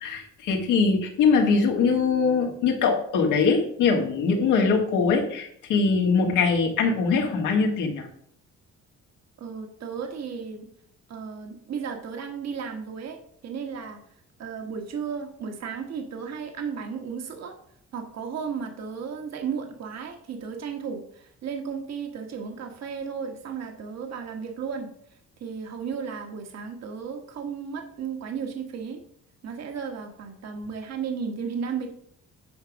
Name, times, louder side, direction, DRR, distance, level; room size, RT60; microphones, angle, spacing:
voice 1, 0.0-8.1, left 5 dB, 90° left, 2 dB, 1.8 m, -22 dB
voice 2, 9.4-10.7 11.1-14.0 14.4-17.5 17.9-24.9 25.4-29.0 29.4-31.9, right 6 dB, 60° right, 4 dB, 1.4 m, -34 dB
9.4 x 4.8 x 5.1 m, 0.66 s
cardioid pair, 90°, 30 cm